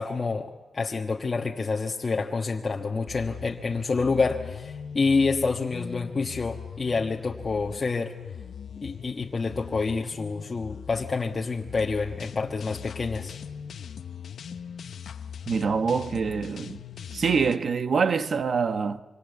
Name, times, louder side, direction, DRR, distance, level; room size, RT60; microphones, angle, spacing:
voice 1, 0.0-8.1 8.8-13.4, left 4 dB, 40° left, 1.3 m, -28 dB
sound 1, 3.1-17.6, left 8 dB, 85° left, 0.8 m, -40 dB
voice 2, 15.5-16.8 17.1-19.0, right 5 dB, 60° right, 1.1 m, -25 dB
26.0 x 24.5 x 8.1 m
wide cardioid pair, 95°, 0 cm